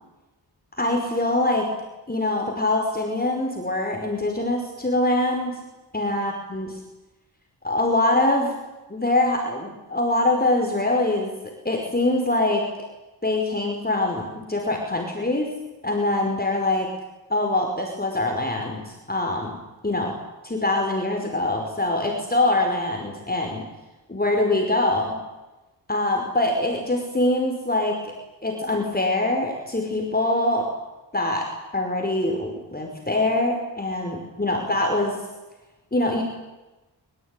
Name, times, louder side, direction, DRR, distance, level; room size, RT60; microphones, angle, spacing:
voice 1, 0.7-1.7 2.1-5.6 5.9-6.8 7.6-8.5 8.9-11.3 11.6-12.7 13.2-15.5 15.8-16.9 17.3-19.6 19.8-20.1 20.4-23.6 24.1-25.2 25.9-28.1 28.4-30.7 31.1-35.2 35.9-36.2, left 2 dB, 20° left, 2 dB, 5.2 m, -24 dB
25.0 x 24.0 x 10.0 m, 1.1 s
wide cardioid pair, 95°, 43 cm